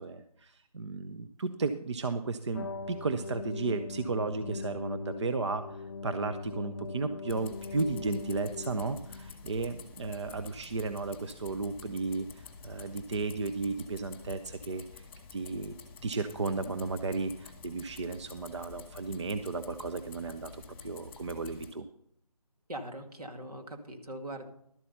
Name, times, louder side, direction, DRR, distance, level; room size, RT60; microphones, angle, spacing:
voice 1, 0.0-15.1 15.3-15.7 16.0-21.9, right 3 dB, 45° right, 9 dB, 0.6 m, -34 dB
sound 1, 2.5-9.6, left 4 dB, 40° left, 0.5 m, -41 dB
sound 2, 7.3-21.7, left 5 dB, 20° left, 1.4 m, -50 dB
voice 2, 22.7-24.5, right 1 dB, 75° right, 4 dB, 2.3 m, -41 dB
12.0 x 8.2 x 5.6 m, 0.70 s
figure-of-eight pair, 160°, 20 cm